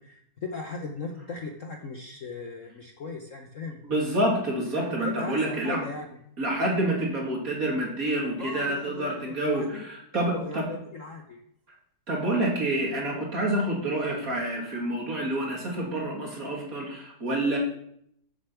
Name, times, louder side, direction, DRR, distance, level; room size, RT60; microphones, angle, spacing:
voice 1, 0.0-3.8 5.0-6.1 8.4-9.8 10.1-11.4, left 4 dB, 50° left, 3 dB, 1.1 m, -38 dB
voice 2, 3.8-5.8 6.4-10.7 12.1-17.6, right 1 dB, 45° right, -2 dB, 2.9 m, -28 dB
8.0 x 7.2 x 6.9 m, 0.71 s
omnidirectional pair, 2.2 m